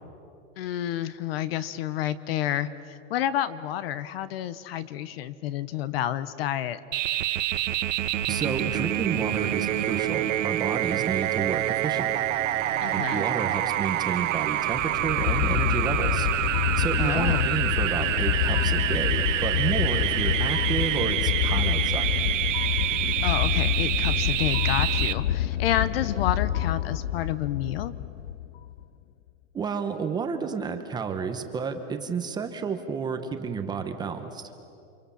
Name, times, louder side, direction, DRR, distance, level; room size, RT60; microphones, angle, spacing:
voice 1, 0.6-6.8 12.8-13.2 17.0-17.5 23.2-27.9, left 11 dB, 50° left, 16 dB, 1.1 m, -29 dB
sound 1, 6.9-25.1, right 13 dB, 75° right, 1.3 m, -27 dB
voice 2, 8.3-12.2 12.9-16.3 16.8-22.2 29.5-34.5, right 6 dB, 10° right, 6 dB, 0.9 m, -31 dB
sound 2, 9.1-21.0, right 9 dB, 30° right, 1.9 m, -41 dB
sound 3, 14.7-28.8, left 12 dB, 85° left, 0.7 m, -27 dB
30.0 x 26.0 x 7.1 m, 2.6 s
supercardioid pair, 170°, 38 cm